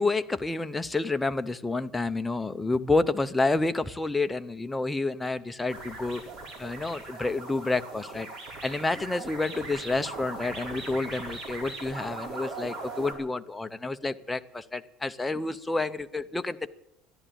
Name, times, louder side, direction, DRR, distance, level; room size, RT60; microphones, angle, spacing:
voice 1, 0.0-6.2 6.6-8.3 8.6-16.7, left 3 dB, 10° left, 9 dB, 0.6 m, -29 dB
sound 1, 5.7-13.1, right 3 dB, 35° right, 5.0 m, -39 dB
14.0 x 11.5 x 9.1 m, 0.82 s
cardioid pair, 160°, 0 cm